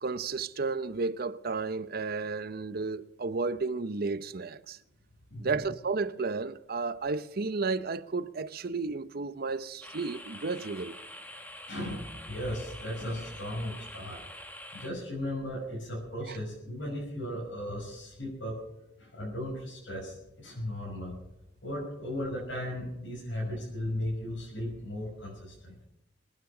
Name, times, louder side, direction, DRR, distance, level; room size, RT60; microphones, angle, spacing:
voice 1, 0.0-4.8 5.4-11.0 16.3-16.4, right 4 dB, 55° right, 0.7 m, -32 dB
sound 1, 9.8-14.9, left 1 dB, 10° left, 1.6 m, -46 dB
voice 2, 11.7-14.2 14.7-18.6 19.0-21.1 21.6-25.8, left 1 dB, 85° left, 6.1 m, -36 dB
22.5 x 9.7 x 6.1 m
head